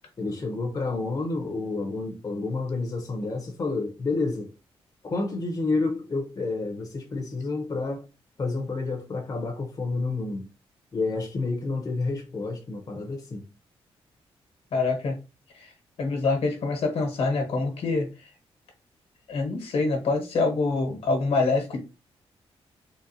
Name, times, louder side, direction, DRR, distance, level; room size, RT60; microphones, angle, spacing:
voice 1, 0.2-4.5 5.0-8.0 8.4-10.5 10.9-13.4, left 3 dB, 35° left, 0.7 m, -29 dB
voice 2, 14.7-15.2 15.5-15.7 16.0-18.3 19.3-21.8, left 3 dB, 75° left, 1.2 m, -25 dB
3.8 x 2.1 x 2.7 m
cardioid pair, 95°, 11 cm